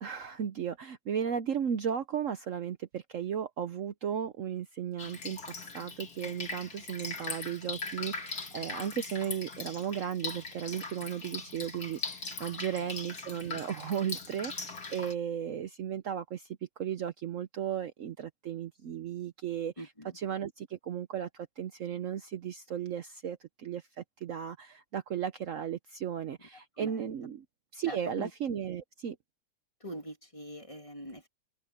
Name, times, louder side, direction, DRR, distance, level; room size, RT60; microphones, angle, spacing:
voice 1, 0.0-19.7 20.1-27.4 27.7-29.2, right 9 dB, 60° right, 1.0 m, -35 dB
Drip, 5.0-15.1, left 3 dB, 70° left, 3.3 m, -40 dB
voice 2, 12.5-12.9 19.8-20.2 26.8-27.1 27.9-28.3 29.8-31.3, equal, 20° left, 2.8 m, -43 dB
open air
omnidirectional pair, 1.7 m